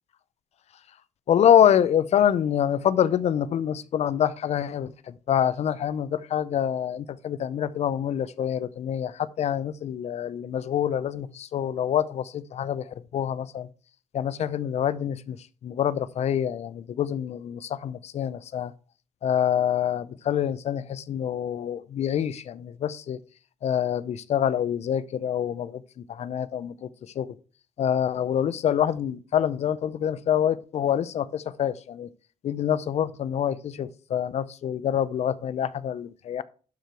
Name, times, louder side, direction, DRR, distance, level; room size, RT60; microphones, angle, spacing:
voice 1, 1.3-13.7 14.1-18.7 19.2-23.2 23.6-27.3 27.8-32.1 32.4-36.4, left 9 dB, 60° left, 0.6 m, -26 dB
12.0 x 4.6 x 4.5 m
cardioid pair, 110°, 12 cm